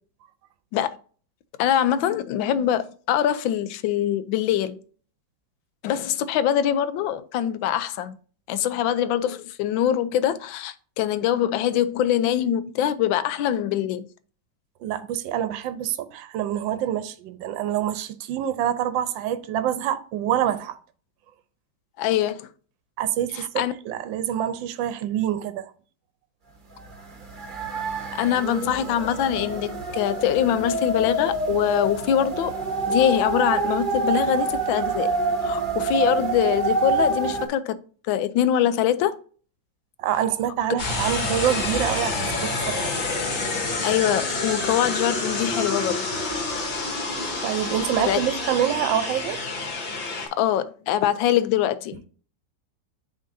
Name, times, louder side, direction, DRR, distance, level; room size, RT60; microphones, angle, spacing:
voice 1, 1.6-4.8 5.8-8.2 8.5-14.1 22.0-22.5 23.3-23.7 28.1-32.5 32.9-35.1 35.4-37.8 38.1-39.2 43.8-46.1 48.1-48.2 50.4-52.0, left 10 dB, 80° left, 1.3 m, -23 dB
voice 2, 14.8-20.8 23.0-25.7 40.0-42.9 47.4-49.4, right 10 dB, 75° right, 1.4 m, -26 dB
sound 1, 26.9-27.0 27.2-37.5, right 2 dB, 30° right, 1.0 m, -26 dB
sound 2, 40.8-50.3, left 3 dB, 60° left, 2.1 m, -28 dB
10.5 x 3.7 x 2.6 m
omnidirectional pair, 2.1 m